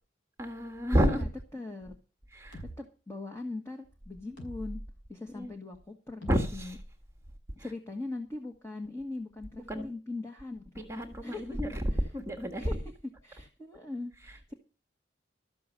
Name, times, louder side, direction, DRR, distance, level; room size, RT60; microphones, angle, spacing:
voice 1, 0.4-1.3 2.3-2.6 5.3-5.5 6.3-6.8 7.6-7.7 9.7-9.9 10.7-11.8 12.1-12.8 14.2-14.4, equal, 15° right, 1.6 m, -30 dB
voice 2, 0.9-1.3 1.5-1.9 2.8-4.8 5.1-6.7 7.6-10.6 11.2-11.4 12.6-12.8 13.2-14.5, left 2 dB, 15° left, 1.7 m, -40 dB
sound 1, 2.5-2.8 4.4-4.9 6.2-7.4, equal, 80° left, 5.8 m, -43 dB
13.5 x 6.9 x 7.8 m
head